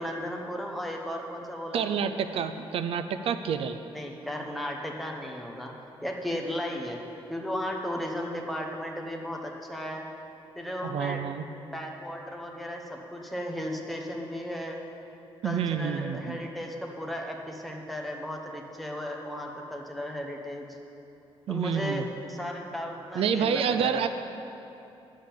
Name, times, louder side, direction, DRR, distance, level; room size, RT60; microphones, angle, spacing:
voice 1, 0.0-2.0 3.9-5.7 6.0-7.0 7.3-10.1 10.6-11.2 11.6-14.8 15.4-20.8 21.5-24.1, equal, ahead, 0 dB, 0.9 m, -35 dB
voice 2, 1.7-3.8 10.8-11.4 15.4-16.4 21.5-22.0 23.2-24.1, right 7 dB, 75° right, 10 dB, 0.5 m, -28 dB
11.0 x 7.4 x 7.2 m, 2.9 s
wide cardioid pair, 180°, 10 cm